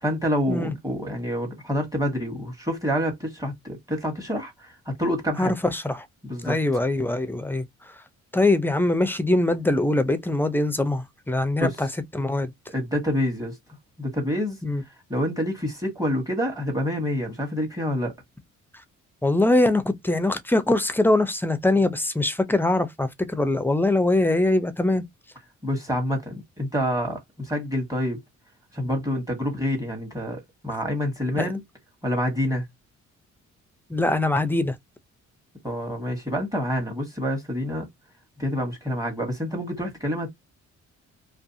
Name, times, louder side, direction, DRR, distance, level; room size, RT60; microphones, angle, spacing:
voice 1, 0.0-5.5 6.2-6.6 11.5-11.7 12.7-13.6 14.0-14.6 15.1-18.1 25.6-28.2 28.7-31.6 32.0-32.6 35.6-37.9 38.4-40.3, equal, 10° right, 1.1 m, -27 dB
voice 2, 5.4-6.1 6.4-7.6 8.3-11.9 12.1-12.5 14.6-14.8 19.2-25.0 31.4-31.5 33.9-34.8, left 2 dB, 5° left, 0.5 m, -22 dB
2.5 x 2.3 x 2.6 m
cardioid pair, 90°, 30 cm